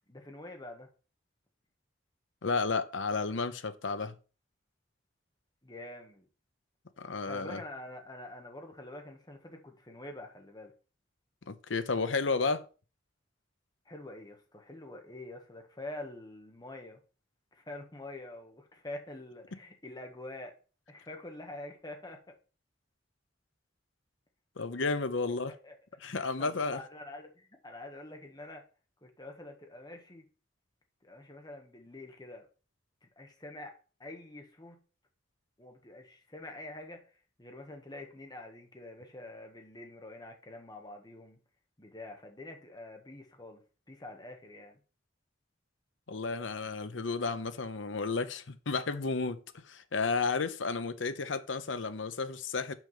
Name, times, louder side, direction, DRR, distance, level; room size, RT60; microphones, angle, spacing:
voice 1, 0.1-0.9 5.6-6.3 7.2-10.7 13.8-17.0 17.5-20.5 20.9-22.2 25.4-25.7 26.2-28.6 29.0-30.2 31.0-32.5 33.2-33.7 34.0-34.8 35.6-37.0 37.4-41.4 41.8-43.6 43.9-44.8, left 2 dB, 20° left, 1.6 m, -46 dB
voice 2, 2.4-4.1 7.0-7.6 11.5-12.7 24.6-25.5 26.0-26.8 46.1-52.7, left 4 dB, 75° left, 0.8 m, -32 dB
6.2 x 5.1 x 5.5 m
head